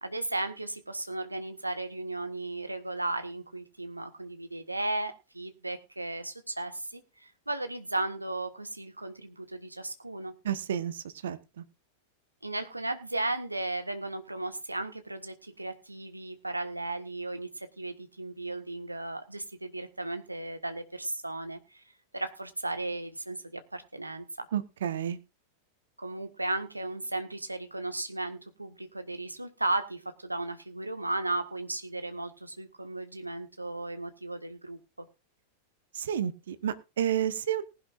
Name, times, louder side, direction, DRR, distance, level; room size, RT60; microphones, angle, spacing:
voice 1, 0.0-10.3 12.4-21.8 22.1-24.5 26.0-35.0, right 2 dB, 85° right, 8 dB, 1.6 m, -35 dB
voice 2, 10.4-11.6 24.5-25.2 35.9-37.6, right 9 dB, 65° right, 12 dB, 1.2 m, -31 dB
19.5 x 11.0 x 2.6 m, 0.28 s
figure-of-eight pair, 90°, 0 cm